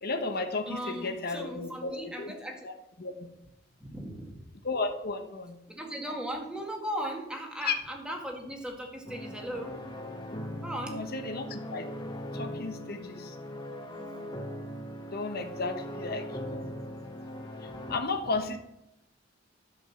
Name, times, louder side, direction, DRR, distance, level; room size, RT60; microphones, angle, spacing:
voice 1, 0.0-2.3 2.6-2.7 3.0-3.3 4.6-5.6 7.6-7.7 10.9-11.9 12.3-13.4 15.1-16.7 17.6-18.6, left 3 dB, 55° left, 6 dB, 1.1 m, -34 dB
voice 2, 0.7-2.6 3.8-4.4 5.7-9.8 10.6-11.0 17.7-17.8, equal, 5° right, 1 dB, 1.9 m, -37 dB
sound 1, 9.1-18.0, left 1 dB, 25° left, 1.3 m, -40 dB
11.5 x 5.3 x 7.2 m, 0.85 s
head